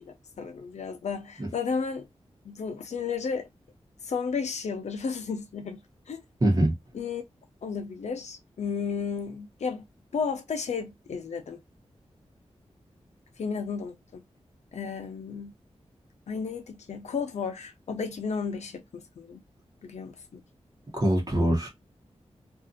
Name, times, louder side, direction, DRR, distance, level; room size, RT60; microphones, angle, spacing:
voice 1, 0.0-2.1 2.4-3.5 4.0-5.8 6.1-6.2 6.9-7.2 7.6-9.8 10.1-11.6 13.4-14.2 14.7-15.5 16.3-19.4 19.8-20.4, left 5 dB, 90° left, 0.7 m, -33 dB
voice 2, 6.4-6.7 20.9-21.7, right 1 dB, 35° right, 1.0 m, -23 dB
2.7 x 2.5 x 2.5 m
wide cardioid pair, 125°, 11 cm